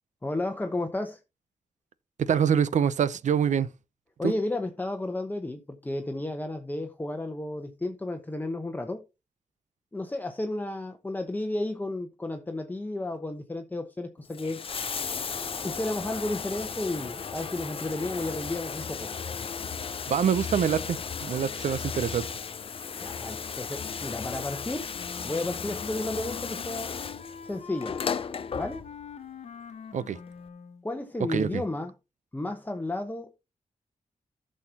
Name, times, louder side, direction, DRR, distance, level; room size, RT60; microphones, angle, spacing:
voice 1, 0.2-1.2 4.2-9.0 9.9-14.6 15.6-19.1 23.0-24.9 25.2-26.9 27.4-28.0 28.6-28.8 30.8-31.9 32.3-33.4, left 2 dB, 15° left, 1.0 m, -32 dB
voice 2, 2.2-3.7 4.2-4.3 20.1-22.3 29.9-30.2 31.3-31.6, right 8 dB, 80° right, 0.7 m, -25 dB
Bathtub (filling or washing), 14.2-29.2 30.3-30.4, left 6 dB, 50° left, 0.6 m, -35 dB
sound 1, 14.7-20.1, right 1 dB, 5° right, 2.8 m, -49 dB
Wind instrument woodwind instrument, 24.9-30.8, left 6 dB, 70° left, 1.0 m, -44 dB
15.0 x 6.6 x 2.9 m
wide cardioid pair, 105°, 12 cm